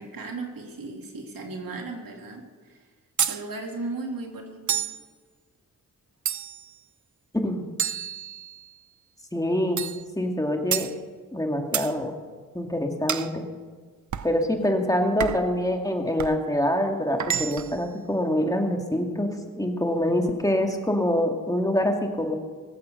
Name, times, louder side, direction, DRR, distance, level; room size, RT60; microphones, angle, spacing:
voice 1, 0.0-2.9 3.2-4.9, right 3 dB, 85° right, 2 dB, 2.4 m, -36 dB
sound 1, 3.2-3.4 4.7-5.0 6.3-6.7 7.8-8.7 9.8-10.0 10.7-10.9 11.7-11.9 13.1-13.3 14.1-14.3 15.2-15.5 16.2-16.4 17.2-17.8, right 9 dB, 60° right, 0.6 m, -29 dB
voice 2, 9.3-9.8 10.2-10.9 11.3-12.1 12.5-13.4 14.2-22.4, left 1 dB, 10° left, 2 dB, 2.3 m, -25 dB
21.5 x 8.2 x 6.6 m, 1.5 s
cardioid pair, 60°, 34 cm